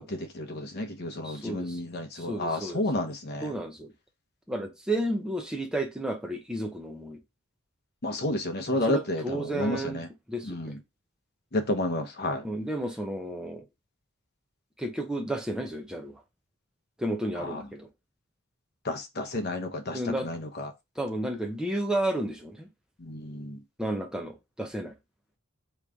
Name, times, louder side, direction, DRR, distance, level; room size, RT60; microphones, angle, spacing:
voice 1, 0.0-3.5 8.0-10.1 10.4-10.8 11.5-12.4 17.4-17.6 18.8-20.7 23.0-23.6, left 1 dB, 50° left, 0.9 m, -31 dB
voice 2, 1.2-1.8 2.1-2.8 3.4-3.9 4.5-7.2 8.7-10.0 10.3-10.7 12.4-13.7 14.8-16.2 17.0-17.9 19.9-20.3 21.0-22.7 23.8-24.9, right 1 dB, 5° right, 0.7 m, -32 dB
3.8 x 3.1 x 3.5 m
head